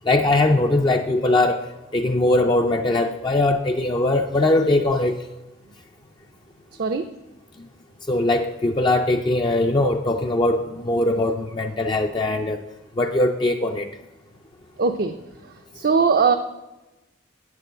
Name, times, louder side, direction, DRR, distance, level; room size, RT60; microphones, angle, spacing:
voice 1, 0.0-1.6 1.9-5.2 8.1-12.6 13.0-13.9, left 2 dB, 25° left, 4 dB, 0.4 m, -21 dB
voice 2, 14.8-15.1 15.8-16.4, right 5 dB, 50° right, 5 dB, 0.5 m, -19 dB
8.3 x 6.9 x 7.7 m, 1.0 s
head